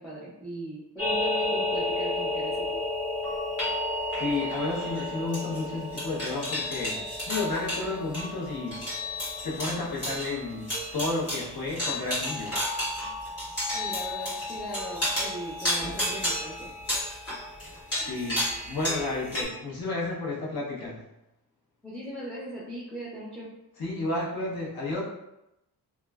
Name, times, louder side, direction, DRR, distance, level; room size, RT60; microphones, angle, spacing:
voice 1, 0.0-2.8 13.7-16.7 21.8-23.5, right 1 dB, 5° left, -7 dB, 0.5 m, -39 dB
sound 1, 1.0-19.4, left 1 dB, 35° left, 1.5 m, -31 dB
voice 2, 4.2-8.8 9.4-12.5 18.0-21.0 23.8-25.0, left 3 dB, 65° left, -5 dB, 0.9 m, -32 dB
3.0 x 2.3 x 2.3 m, 0.88 s
wide cardioid pair, 110°, 40 cm